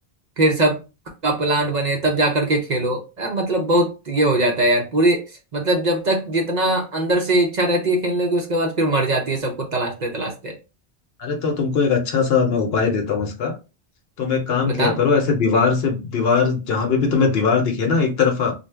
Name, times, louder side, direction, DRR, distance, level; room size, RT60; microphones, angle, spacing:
voice 1, 0.4-0.8 1.2-5.2 5.5-10.5 14.6-15.0, right 1 dB, 50° right, 1 dB, 0.6 m, -21 dB
voice 2, 11.2-13.5 14.2-18.5, left 5 dB, 70° left, 3 dB, 0.9 m, -20 dB
2.5 x 2.1 x 3.2 m, 0.30 s
omnidirectional pair, 1.1 m